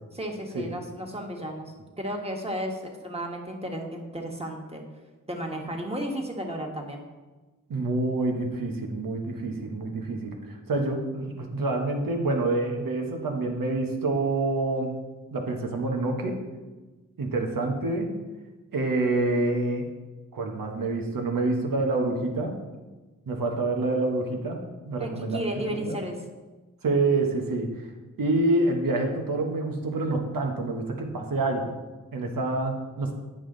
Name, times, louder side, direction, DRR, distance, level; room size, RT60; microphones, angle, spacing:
voice 1, 0.1-4.8 5.3-7.0 25.0-26.2, equal, 20° right, 1 dB, 1.6 m, -33 dB
voice 2, 7.7-14.9 15.3-16.4 17.2-18.1 18.7-19.9 20.3-22.6 23.3-24.6 24.9-25.4 25.8-26.0 26.8-27.8 28.2-31.7 32.1-33.1, right 2 dB, 85° right, 2 dB, 1.2 m, -27 dB
8.9 x 5.5 x 3.9 m, 1.2 s
cardioid pair, 40°, 33 cm